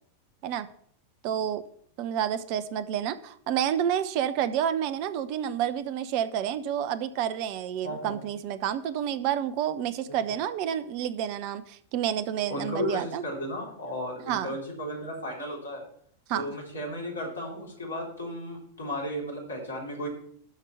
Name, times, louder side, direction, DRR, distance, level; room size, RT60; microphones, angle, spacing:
voice 1, 1.2-1.6 2.0-13.2 14.3-14.6 16.3-16.5, right 9 dB, 45° right, 14 dB, 0.8 m, -29 dB
voice 2, 7.8-8.2 10.1-10.2 12.5-15.8 16.3-20.1, equal, 70° left, -1 dB, 3.7 m, -34 dB
12.5 x 4.6 x 7.2 m, 0.65 s
figure-of-eight pair, 90°, 0 cm